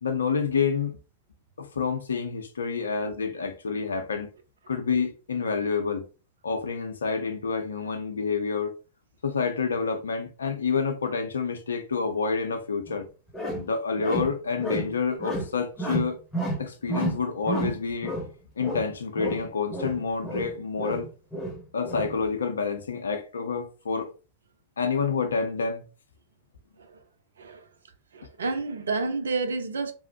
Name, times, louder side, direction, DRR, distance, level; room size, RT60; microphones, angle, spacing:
voice 1, 0.0-1.0 1.6-4.3 4.7-6.1 6.4-8.7 9.2-13.1 13.5-16.2 16.6-18.2 18.6-21.1 21.7-24.1 24.8-25.9, left 5 dB, 70° left, 0.5 m, -28 dB
sound 1, 12.9-13.0 13.3-13.7 14.0-14.9 15.2-15.5 15.8-16.6 16.9-18.3 18.6-18.9 19.2-20.5 20.8-22.2, right 1 dB, 10° left, 1.0 m, -31 dB
voice 2, 28.1-29.9, right 3 dB, 70° right, 0.4 m, -30 dB
2.9 x 2.0 x 2.7 m
figure-of-eight pair, 90°, 0 cm